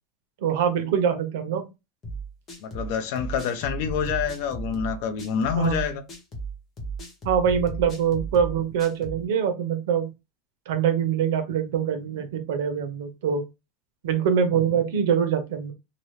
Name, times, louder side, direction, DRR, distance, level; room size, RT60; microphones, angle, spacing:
voice 1, 0.4-1.7 5.6-5.8 7.2-10.1 10.7-13.4 14.0-15.7, right 8 dB, 80° right, 0.8 m, -24 dB
sound 1, 2.0-9.2, right 3 dB, 25° left, 1.0 m, -35 dB
voice 2, 2.6-6.0, left 7 dB, 60° left, 0.6 m, -27 dB
2.9 x 2.6 x 3.1 m
supercardioid pair, 160°, 0 cm